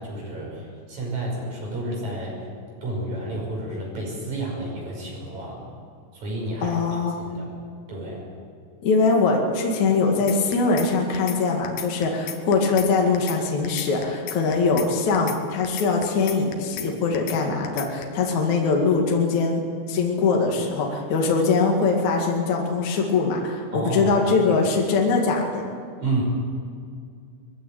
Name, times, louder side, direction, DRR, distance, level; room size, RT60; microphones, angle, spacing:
voice 1, 0.0-2.5 2.8-5.7 6.1-6.8 7.2-7.5 7.9-8.3 23.7-24.2 24.4-24.6 26.0-26.2, right 2 dB, 45° right, -2 dB, 7.2 m, -30 dB
voice 2, 6.6-7.3 8.8-19.6 19.9-25.7, left 4 dB, 50° left, 0 dB, 3.2 m, -22 dB
sound 1, 10.3-10.9 11.1-11.4 11.6-12.9 13.1-13.4 13.6-14.9 15.1-15.4 15.6-16.9 17.1-17.4 17.6-18.0, left 10 dB, 75° left, 3.0 m, -34 dB
21.0 x 15.5 x 9.0 m, 2.3 s
omnidirectional pair, 4.5 m